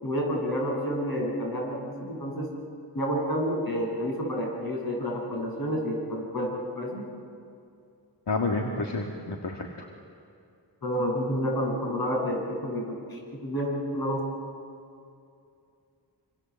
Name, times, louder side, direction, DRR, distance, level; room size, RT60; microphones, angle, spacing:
voice 1, 0.0-2.5 2.9-7.0 10.8-14.2, equal, 60° left, -2 dB, 8.0 m, -29 dB
voice 2, 8.3-9.9, left 3 dB, 80° left, 1 dB, 2.1 m, -29 dB
27.0 x 26.5 x 7.6 m, 2.5 s
wide cardioid pair, 100°, 41 cm